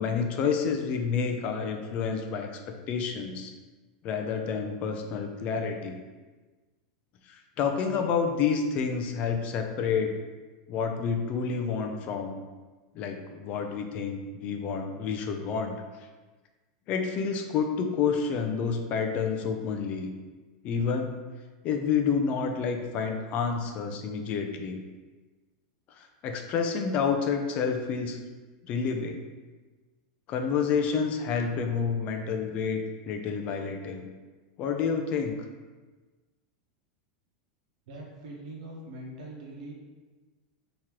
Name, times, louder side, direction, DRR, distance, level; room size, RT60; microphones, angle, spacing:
voice 1, 0.0-2.6 2.9-3.5 4.0-6.0 7.3-10.2 10.7-12.4 12.9-15.8 16.9-20.1 20.6-21.1 21.6-24.8 26.0-28.2 28.7-29.2 30.3-34.1 34.6-35.4, left 6 dB, 35° left, 4 dB, 0.4 m, -29 dB
voice 2, 37.9-39.7, right 1 dB, 85° right, -2 dB, 1.0 m, -42 dB
3.6 x 2.9 x 3.0 m, 1.3 s
supercardioid pair, 150°, 4 cm